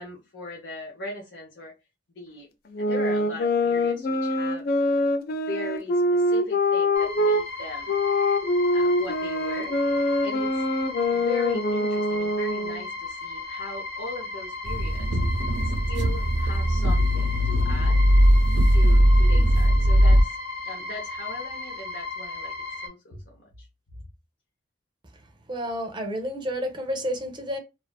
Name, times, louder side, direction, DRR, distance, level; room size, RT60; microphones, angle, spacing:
voice 1, 0.0-1.7 2.2-2.5 2.8-4.7 5.5-8.0 8.7-9.7 10.2-10.6 11.1-15.1 15.9-18.0 18.7-20.4 20.6-22.5 22.8-23.7, left 2 dB, 80° left, 0.8 m, -39 dB
sound 1, 2.7-7.4 7.9-12.8, left 1 dB, 55° left, 0.4 m, -24 dB
sound 2, 6.9-22.9, left 3 dB, 40° left, 1.0 m, -36 dB
sound 3, 14.7-20.2, equal, 85° right, 0.5 m, -19 dB
voice 2, 25.5-27.6, equal, 25° right, 0.5 m, -30 dB
2.4 x 2.3 x 2.3 m
head